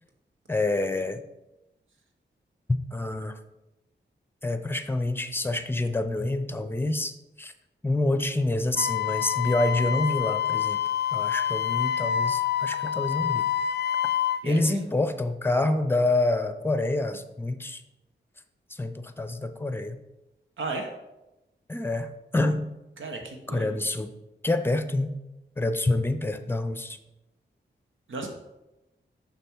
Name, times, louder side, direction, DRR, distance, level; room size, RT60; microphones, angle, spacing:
voice 1, 0.5-1.2 2.9-3.4 4.4-7.5 7.8-10.8 11.1-13.4 14.4-17.8 18.7-20.0 21.7-22.7 23.5-24.1 24.4-25.2 25.6-27.0, left 2 dB, 10° left, 10 dB, 0.6 m, -27 dB
Wind instrument woodwind instrument, 8.8-14.4, left 9 dB, 60° left, 0.4 m, -27 dB
voice 2, 14.4-14.9 20.6-20.9 23.0-23.9 28.1-28.3, right 3 dB, 85° right, 2 dB, 1.0 m, -35 dB
6.8 x 6.0 x 4.6 m, 0.98 s
wide cardioid pair, 85°, 20 cm